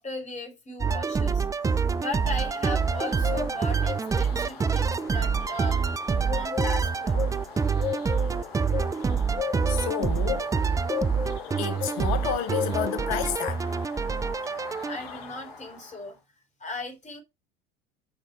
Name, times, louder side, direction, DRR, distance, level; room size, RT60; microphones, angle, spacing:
voice 1, 0.0-1.4 2.0-7.4 14.9-16.2 16.6-17.2, left 2 dB, 25° left, 3.9 m, -37 dB
sound 1, 0.8-15.0, right 5 dB, 10° right, 0.4 m, -26 dB
Bird, 1.3-16.0, left 7 dB, 75° left, 3.9 m, -37 dB
voice 2, 9.7-10.5 11.6-13.6, left 10 dB, 60° left, 1.5 m, -30 dB
8.1 x 5.0 x 4.5 m
hypercardioid pair, 75°, 30 cm